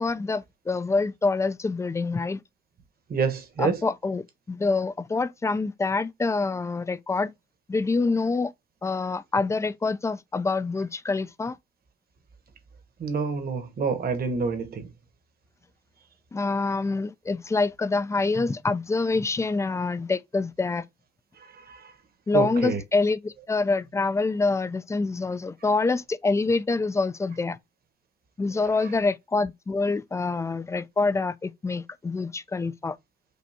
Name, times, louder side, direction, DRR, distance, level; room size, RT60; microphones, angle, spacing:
voice 1, 0.0-2.4 3.6-7.3 7.7-8.5 8.8-11.6 16.3-20.8 22.3-27.6 28.4-33.0, left 3 dB, 15° left, 0.3 m, -26 dB
voice 2, 3.1-3.8 13.0-14.9 21.7-21.9 22.3-22.8, right 5 dB, 50° right, 1.2 m, -27 dB
5.3 x 2.3 x 2.7 m
cardioid pair, 90°, 20 cm